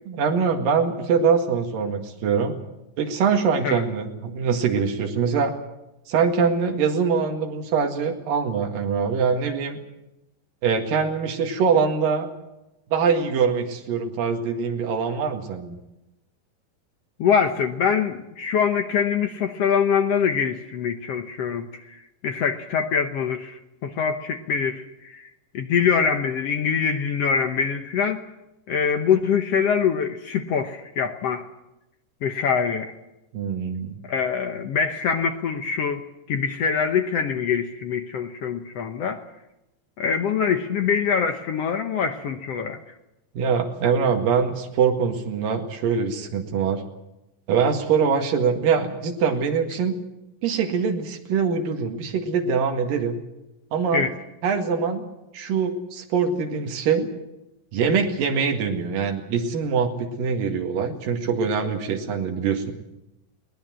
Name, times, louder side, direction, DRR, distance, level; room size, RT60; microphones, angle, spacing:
voice 1, 0.1-2.6 3.0-5.5 6.1-9.8 10.6-12.3 12.9-15.8 33.3-34.0 43.4-46.8 47.5-49.9 50.4-53.2 53.7-54.1 54.4-55.1 55.3-57.1 57.7-62.7, right 6 dB, 75° right, 3 dB, 3.6 m, -23 dB
voice 2, 17.2-21.7 22.2-25.2 25.5-28.2 28.7-31.4 32.2-32.9 34.1-36.0 36.3-39.2 40.0-42.8 53.9-54.1, left 6 dB, 65° left, 6 dB, 1.6 m, -24 dB
22.5 x 19.0 x 7.6 m, 0.93 s
omnidirectional pair, 4.0 m